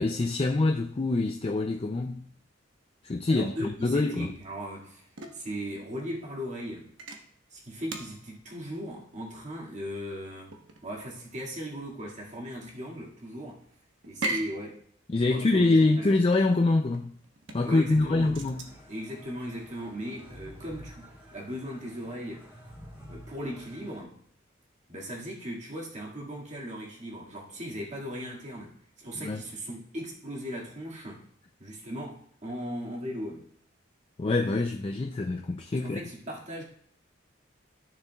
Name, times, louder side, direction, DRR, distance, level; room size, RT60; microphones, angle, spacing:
voice 1, 0.0-2.3 3.0-4.3 15.1-17.2 17.5-18.6 29.2-29.4 34.2-36.0, left 2 dB, 30° left, 0.4 m, -25 dB
voice 2, 3.3-5.1 5.3-6.9 7.5-10.5 10.8-13.6 14.1-14.8 15.3-16.1 17.6-18.4 18.9-22.5 23.1-24.2 24.9-31.3 31.6-33.5 35.7-36.6, equal, 35° right, 2.1 m, -38 dB
sound 1, 4.4-20.9, right 2 dB, 70° right, 1.1 m, -42 dB
sound 2, 17.6-24.0, equal, 10° right, 2.7 m, -49 dB
12.5 x 6.7 x 2.3 m
head